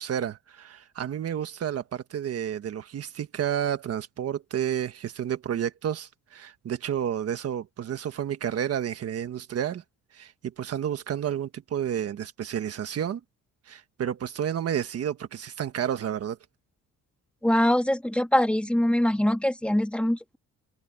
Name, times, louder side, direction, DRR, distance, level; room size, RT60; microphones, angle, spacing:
voice 1, 0.0-9.8 10.1-13.2 13.7-16.4, right 9 dB, 50° right, 1.4 m, -31 dB
voice 2, 17.4-20.4, left 1 dB, 5° left, 2.4 m, -23 dB
cardioid pair, 140°, 30 cm